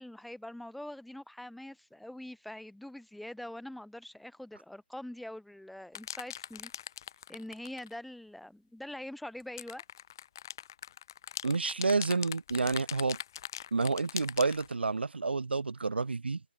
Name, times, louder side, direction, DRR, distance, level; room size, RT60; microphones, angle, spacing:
voice 1, 0.0-6.7 7.3-9.8, left 1 dB, ahead, 7.3 m, -44 dB
sound 1, 5.9-7.9 9.4-14.7, left 10 dB, 20° left, 4.2 m, -41 dB
voice 2, 11.4-13.2 13.7-16.4, right 4 dB, 75° right, 4.5 m, -29 dB
hypercardioid pair, 180°, 6 cm